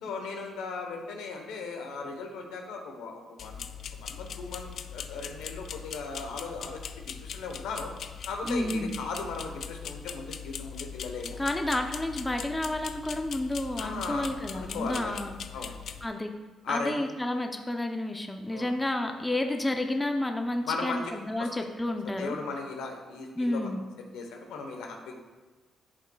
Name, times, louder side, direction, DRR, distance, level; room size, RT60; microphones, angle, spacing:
voice 1, 0.0-3.6 4.0-6.8 7.2-7.9 8.3-11.4 13.8-15.8 16.6-17.1 18.5-18.7 20.6-21.0 21.4-21.7 22.2-23.8 24.1-25.2, left 4 dB, 90° left, 3 dB, 1.0 m, -37 dB
sound 1, 3.4-16.1, left 7 dB, 60° left, 0.3 m, -41 dB
voice 2, 8.4-8.9 11.4-15.4 16.0-16.3 16.7-22.4 23.4-23.8, left 1 dB, 10° left, 5 dB, 0.6 m, -30 dB
11.0 x 5.3 x 2.3 m, 1.2 s
cardioid pair, 90°, 0 cm